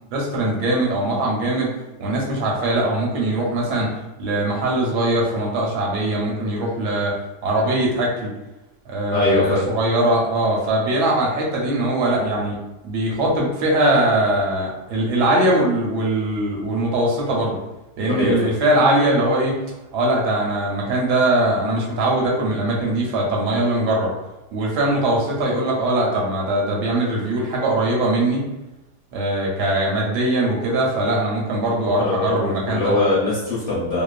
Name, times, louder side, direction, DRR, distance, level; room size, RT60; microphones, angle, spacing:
voice 1, 0.1-1.7 2.0-3.9 4.2-7.1 7.4-8.3 8.8-12.6 12.8-17.6 18.0-19.5 19.9-24.1 24.5-28.4 29.1-32.9, right 1 dB, 80° right, -2 dB, 1.2 m, -21 dB
voice 2, 9.1-9.6 18.1-18.4 32.0-34.0, left 2 dB, 50° left, -9 dB, 0.9 m, -22 dB
3.0 x 2.0 x 2.4 m, 0.99 s
omnidirectional pair, 1.8 m